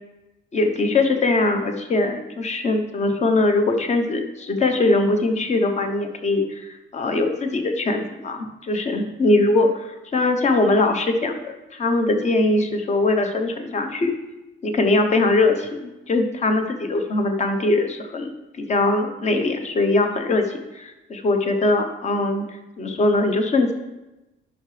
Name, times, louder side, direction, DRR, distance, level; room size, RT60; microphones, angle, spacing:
voice 1, 0.5-14.1 14.6-18.3 18.6-23.7, left 2 dB, 35° left, 5 dB, 0.8 m, -21 dB
10.5 x 5.7 x 3.3 m, 1.0 s
cardioid pair, 150°, 21 cm